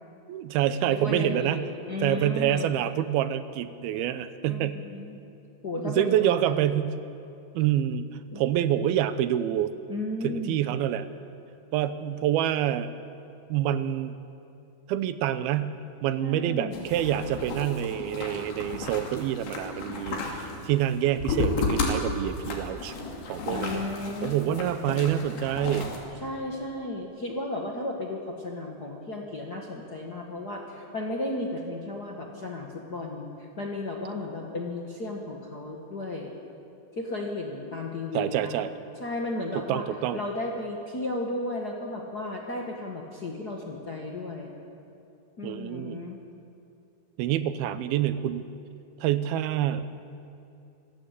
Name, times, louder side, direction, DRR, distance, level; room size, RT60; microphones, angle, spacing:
voice 1, 0.3-1.7 2.0-4.8 5.8-7.0 7.5-8.1 8.4-9.7 10.2-11.1 11.7-12.9 13.5-14.2 14.9-22.9 23.3-23.8 24.2-25.9 38.1-38.7 39.6-40.2 45.4-46.1 47.2-48.4 49.0-50.1, right 11 dB, 85° right, 12 dB, 2.7 m, -27 dB
voice 2, 0.8-2.7 4.5-5.1 5.6-6.6 8.3-8.4 9.9-10.6 16.2-16.8 23.5-24.7 26.2-36.3 36.9-38.7 39.0-39.8 40.1-44.5 45.4-46.2, left 2 dB, 40° left, -1 dB, 1.4 m, -34 dB
sound 1, 16.7-26.0, left 3 dB, 80° left, 4.6 m, -33 dB
26.0 x 16.5 x 8.3 m, 2.6 s
omnidirectional pair, 4.3 m